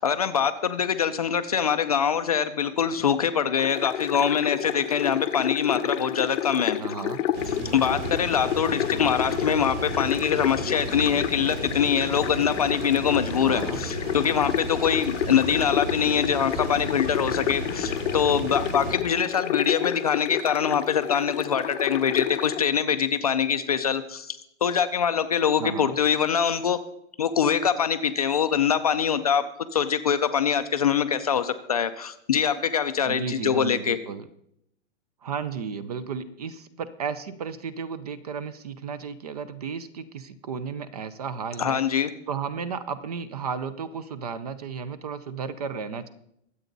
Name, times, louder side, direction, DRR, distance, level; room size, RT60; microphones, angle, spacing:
voice 1, 0.0-7.0 7.7-26.8 27.2-29.4 29.7-34.0 41.6-42.1, left 7 dB, 35° left, 9 dB, 0.4 m, -24 dB
sound 1, 3.6-22.7, left 10 dB, 80° left, 0.9 m, -30 dB
voice 2, 6.8-7.2 13.4-13.8 25.6-26.0 33.1-34.3 35.2-41.8 42.3-46.1, right 6 dB, 35° right, 15 dB, 0.6 m, -33 dB
sound 2, 7.3-19.0, right 2 dB, 70° right, 3.9 m, -34 dB
23.0 x 8.3 x 4.0 m, 0.77 s
hypercardioid pair, 175°, 37 cm